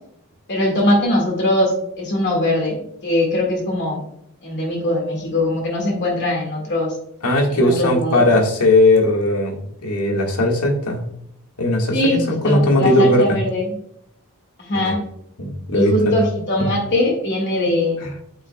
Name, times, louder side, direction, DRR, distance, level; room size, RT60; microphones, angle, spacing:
voice 1, 0.5-4.0 4.4-7.0 7.5-8.3 11.9-13.8 14.6-15.0 15.7-18.0, left 1 dB, 50° left, -1 dB, 1.9 m, -21 dB
voice 2, 7.2-9.5 9.8-11.0 11.6-13.4 14.7-14.9 15.4-16.2 18.0-18.1, left 1 dB, 80° left, 2 dB, 1.6 m, -18 dB
8.1 x 5.6 x 2.2 m, 0.73 s
head